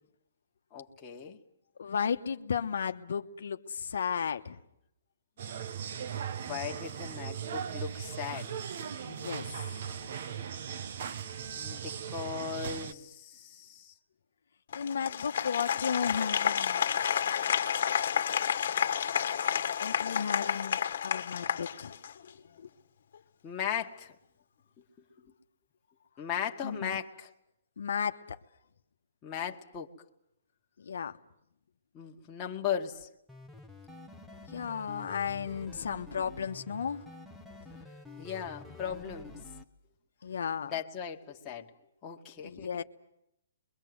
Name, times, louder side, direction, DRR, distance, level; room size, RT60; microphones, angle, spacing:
voice 1, 0.7-1.4 6.3-8.5 11.5-13.9 23.4-24.1 26.2-27.3 29.2-29.9 31.9-33.1 38.2-39.4 40.6-41.7 42.0-42.8, left 8 dB, 20° left, 1.7 m, -37 dB
voice 2, 1.8-4.6 9.1-10.1 14.7-16.8 19.8-21.9 22.2-22.3 26.6-27.0 27.8-28.4 30.8-31.2 34.5-37.1 40.2-40.7 42.4-42.8, left 7 dB, 70° left, 1.1 m, -34 dB
sound 1, 5.4-12.9, right 8 dB, 50° right, 1.1 m, -38 dB
Applause, 14.7-22.3, left 8 dB, 55° left, 1.5 m, -30 dB
sound 2, 33.3-39.6, left 2 dB, ahead, 1.0 m, -49 dB
26.0 x 22.5 x 7.9 m
hypercardioid pair, 165°, 0 cm